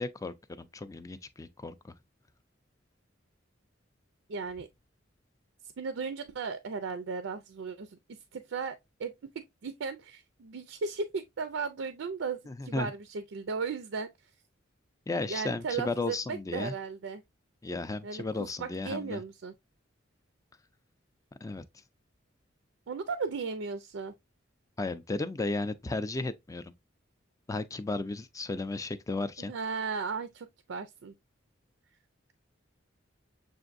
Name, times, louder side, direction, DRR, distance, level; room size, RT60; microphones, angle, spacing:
voice 1, 0.0-1.9 12.5-12.9 15.1-16.7 17.6-19.2 21.4-21.6 24.8-26.7 27.5-29.5, left 3 dB, 15° left, 0.4 m, -34 dB
voice 2, 4.3-4.7 5.8-8.0 8.3-14.1 15.3-17.2 18.0-18.2 18.6-19.5 22.9-24.1 29.4-31.1, right 5 dB, 70° right, 0.4 m, -36 dB
6.9 x 2.6 x 2.5 m
head